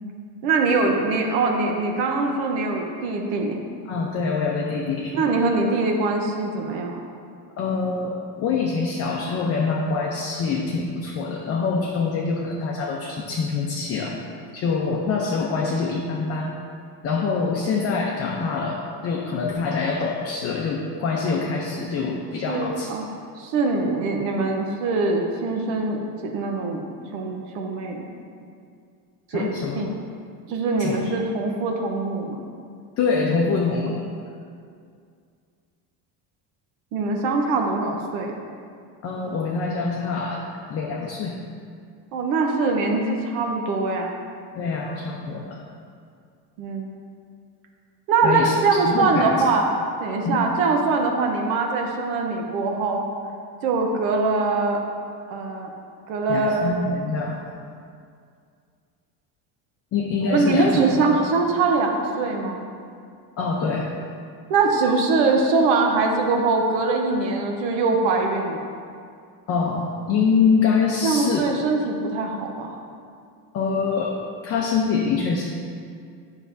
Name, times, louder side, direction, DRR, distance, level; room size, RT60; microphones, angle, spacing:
voice 1, 0.4-3.6 5.1-7.0 21.2-21.3 22.5-23.1 23.4-26.9 27.1-28.0 29.3-30.0 30.5-32.4 36.9-38.3 42.1-44.1 46.6-46.9 48.1-49.6 50.0-53.1 53.6-54.8 55.3-55.7 56.1-56.7 60.3-62.6 64.5-68.7 71.0-72.7, right 3 dB, 80° right, 2 dB, 0.9 m, -23 dB
voice 2, 3.9-5.2 7.6-14.2 14.5-16.6 17.0-22.9 29.3-29.9 30.8-31.2 33.0-34.0 39.0-40.4 40.7-41.4 44.6-45.6 48.2-48.5 48.9-49.3 50.2-50.4 56.3-57.4 59.9-60.8 63.4-63.9 69.5-71.4 73.5-75.5, left 4 dB, 35° left, -1 dB, 0.6 m, -25 dB
8.1 x 6.1 x 2.6 m, 2.3 s
cardioid pair, 135°, 42 cm